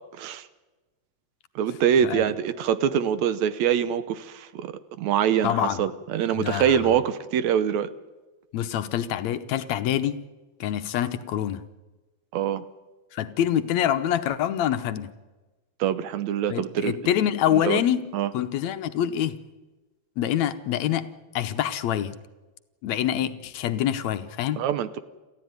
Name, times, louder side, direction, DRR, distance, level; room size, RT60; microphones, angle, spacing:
voice 1, 1.6-7.9 12.3-12.6 15.8-17.0 17.6-17.8 18.1-18.3 24.6-25.0, right 9 dB, 75° right, 2.2 m, -24 dB
voice 2, 5.4-5.8 6.3-6.8 8.5-10.2 10.6-11.6 13.1-15.1 16.5-18.1 18.3-19.4 20.2-22.1 22.8-24.6, left 10 dB, 75° left, 2.1 m, -26 dB
28.0 x 15.0 x 9.5 m
omnidirectional pair, 3.3 m